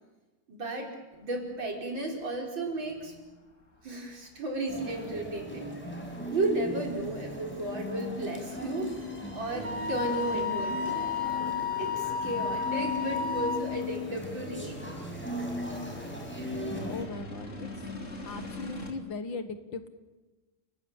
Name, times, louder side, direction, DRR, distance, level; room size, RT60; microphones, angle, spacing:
voice 1, 0.5-0.9 1.2-3.1 3.8-5.7 6.3-8.9 9.3-11.0 11.8-14.8, right 2 dB, 65° right, 1 dB, 5.5 m, -34 dB
sound 1, 1.1-18.9, equal, 35° left, 3.3 m, -47 dB
sound 2, 4.7-17.0, left 2 dB, 5° left, 5.3 m, -38 dB
voice 2, 5.7-6.1 16.8-17.7 18.2-19.9, left 4 dB, 65° left, 10 dB, 2.3 m, -39 dB
Wind instrument woodwind instrument, 9.6-13.6, left 6 dB, 25° right, 2.5 m, -32 dB
29.5 x 18.0 x 8.9 m, 1.2 s
omnidirectional pair, 2.3 m